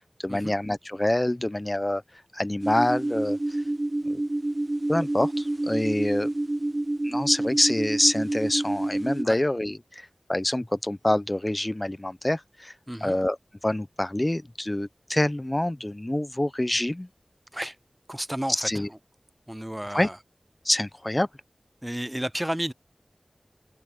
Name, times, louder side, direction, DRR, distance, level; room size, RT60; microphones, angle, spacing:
voice 1, 0.2-2.0 2.3-3.4 4.1-4.2 4.9-6.3 7.0-12.7 13.0-13.4 13.6-17.1 18.5-18.9 19.9-20.1 20.6-21.3, left 1 dB, 30° left, 0.7 m, -26 dB
sound 1, 2.6-9.2, right 1 dB, 45° right, 0.8 m, -28 dB
voice 2, 12.9-13.2 17.5-17.8 18.1-19.0 19.5-20.2 21.8-22.7, equal, 15° right, 0.7 m, -32 dB
wide cardioid pair, 50°, 0 cm